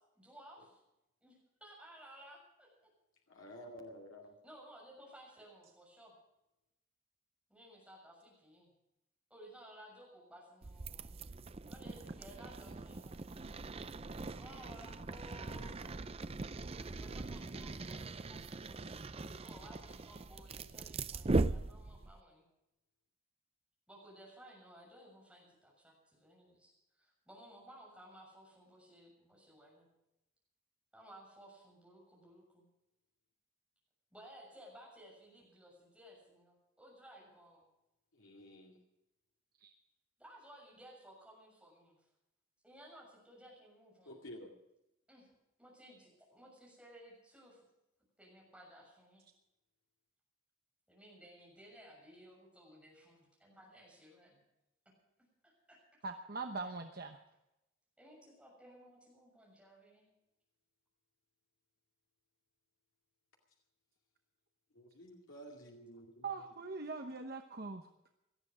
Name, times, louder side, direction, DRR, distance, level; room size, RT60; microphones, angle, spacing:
voice 1, 0.2-0.8 1.2-1.3 1.6-2.9 4.4-6.2 7.5-8.7 9.3-11.3 11.7-13.4 14.4-16.0 16.8-22.4 23.9-29.9 30.9-32.7 34.1-37.7 40.2-42.1 42.6-44.2 45.1-45.3 45.6-47.6 48.2-49.3 50.9-54.4 54.9-55.0 55.4-56.0 58.0-60.1, equal, 5° right, -3 dB, 6.9 m, -57 dB
voice 2, 3.3-4.3 38.2-38.8 44.1-44.5 64.8-66.3, equal, 70° left, 0 dB, 2.3 m, -51 dB
sound 1, 10.6-22.2, right 3 dB, 30° right, 0.5 m, -40 dB
voice 3, 56.0-57.2 66.2-67.9, right 4 dB, 45° right, 5 dB, 1.0 m, -42 dB
18.5 x 13.5 x 5.0 m, 0.89 s
head